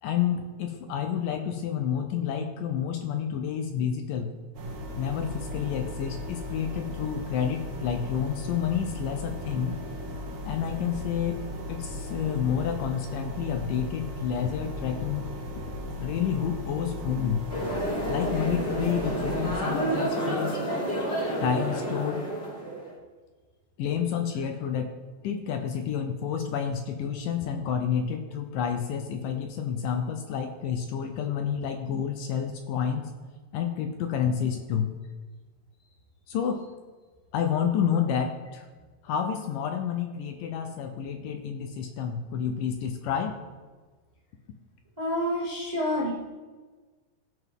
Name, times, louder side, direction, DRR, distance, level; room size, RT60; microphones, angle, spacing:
voice 1, 0.0-4.3 5.0-9.8 10.5-11.4 11.7-15.2 16.0-17.4 18.1-20.6 21.4-22.2 23.8-24.9 25.2-33.1 33.5-34.9 36.3-36.6 37.3-38.7 39.0-43.4, left 8 dB, 75° left, 5 dB, 2.1 m, -29 dB
sound 1, 4.5-19.5, left 1 dB, 50° right, 1.9 m, -37 dB
sound 2, 17.5-22.9, right 1 dB, 30° left, 2.2 m, -30 dB
voice 2, 45.0-46.1, equal, 35° right, -6 dB, 0.6 m, -28 dB
16.5 x 5.9 x 3.6 m, 1.3 s
omnidirectional pair, 4.4 m